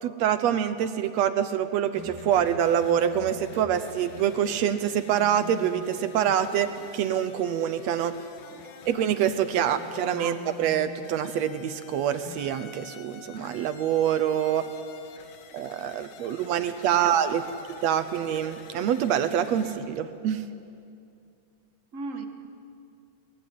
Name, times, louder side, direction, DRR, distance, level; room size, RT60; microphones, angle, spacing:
voice 1, 0.0-8.1 8.9-14.6 15.5-17.4 17.8-20.4, right 9 dB, 70° right, 11 dB, 1.7 m, -25 dB
sound 1, 1.9-19.8, left 6 dB, 85° left, 3.1 m, -46 dB
voice 2, 15.2-17.6 21.9-22.2, right 4 dB, 40° right, 5 dB, 1.1 m, -42 dB
23.0 x 19.5 x 9.3 m, 2.5 s
omnidirectional pair, 3.8 m